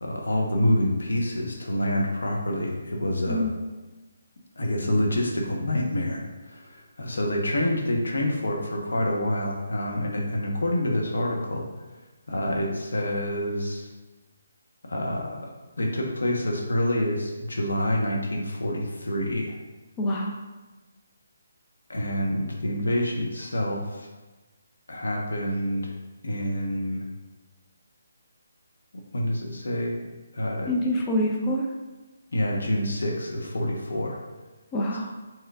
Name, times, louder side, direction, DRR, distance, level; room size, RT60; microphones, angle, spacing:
voice 1, 0.0-3.5 4.6-11.7 12.3-13.9 14.8-19.6 21.9-24.1 24.9-25.9 26.2-27.0 29.1-30.0 30.3-30.7 32.3-34.2, left 1 dB, 85° left, 0 dB, 1.0 m, -27 dB
voice 2, 20.0-20.4 30.7-31.7 34.7-35.1, equal, 20° left, -1 dB, 0.5 m, -26 dB
5.5 x 3.6 x 2.4 m, 1.2 s
hypercardioid pair, 160°, 0 cm